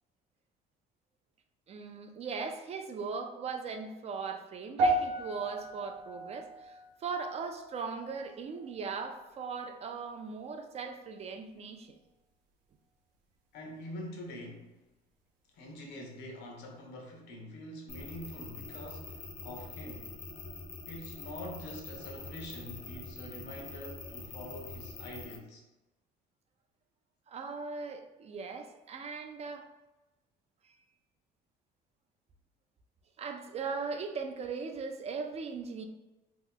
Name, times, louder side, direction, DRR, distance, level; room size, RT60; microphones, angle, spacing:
voice 1, 1.7-12.0 27.3-29.7 30.6-30.8 33.2-35.9, right 5 dB, 40° right, 6 dB, 0.4 m, -39 dB
sound 1, 4.8-9.2 9.4-9.8 10.5-10.6, right 2 dB, 80° right, 0.6 m, -35 dB
voice 2, 13.5-14.8 15.5-20.1 20.9-25.6, left 1 dB, 80° left, 1 dB, 0.8 m, -45 dB
sound 2, 17.9-25.4, left 3 dB, 50° left, 0.6 m, -45 dB
2.9 x 2.2 x 3.7 m, 1.1 s
cardioid pair, 110°, 17 cm